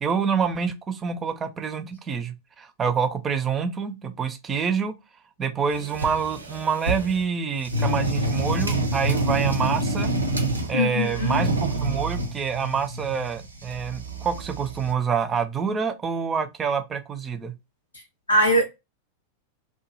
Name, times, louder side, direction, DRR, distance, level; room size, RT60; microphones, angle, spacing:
voice 1, 0.0-4.9 5.4-10.1 10.7-17.5, right 6 dB, 20° right, 0.5 m, -27 dB
sound 1, 5.7-7.2 7.6-10.8 11.1-14.9, right 1 dB, 85° right, 0.6 m, -27 dB
voice 2, 10.7-11.4 18.3-18.6, equal, 80° left, 0.5 m, -21 dB
2.9 x 2.2 x 2.9 m
figure-of-eight pair, 90°, 0 cm